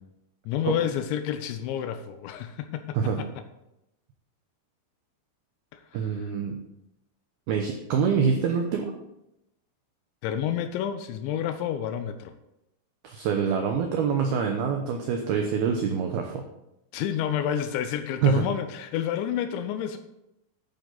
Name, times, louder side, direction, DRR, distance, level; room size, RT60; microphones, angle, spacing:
voice 1, 0.5-3.3 5.7-5.8 10.2-12.3 16.9-20.0, left 10 dB, 80° left, 9 dB, 2.8 m, -29 dB
voice 2, 5.9-6.6 7.5-8.9 13.0-16.4 18.2-18.5, right 6 dB, 90° right, 3 dB, 2.2 m, -25 dB
11.0 x 8.7 x 4.0 m, 0.88 s
omnidirectional pair, 5.6 m